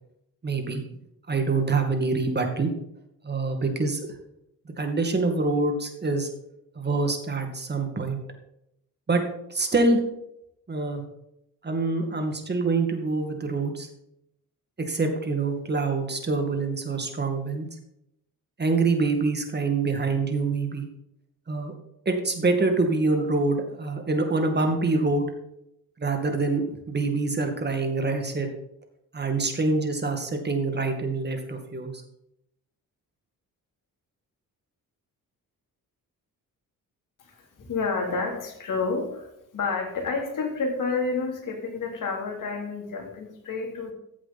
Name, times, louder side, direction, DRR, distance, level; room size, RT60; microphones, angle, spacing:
voice 1, 0.4-0.8 1.3-2.7 3.2-4.0 4.8-6.3 6.8-8.2 9.1-9.2 9.5-10.0 10.7-11.0 11.6-13.9 14.8-17.7 18.6-20.9 21.5-21.7 22.1-25.3 26.0-28.5 29.1-31.9, right 3 dB, 30° right, 5 dB, 2.2 m, -25 dB
voice 2, 37.3-43.9, left 4 dB, 60° left, 0 dB, 3.5 m, -30 dB
14.5 x 7.7 x 4.3 m, 0.80 s
cardioid pair, 95°, 36 cm